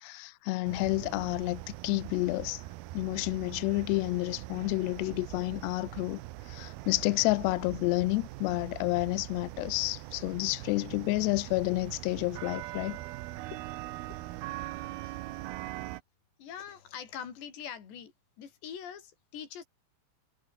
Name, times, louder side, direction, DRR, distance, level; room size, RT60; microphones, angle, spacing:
voice 1, 0.0-2.6 2.9-6.2 6.5-13.0, left 22 dB, 85° left, 2.4 m, -30 dB
sound 1, 0.6-16.0, right 17 dB, 85° right, 2.1 m, -42 dB
voice 2, 16.4-18.1 18.4-19.7, left 8 dB, 65° left, 6.3 m, -43 dB
omnidirectional pair, 5.5 m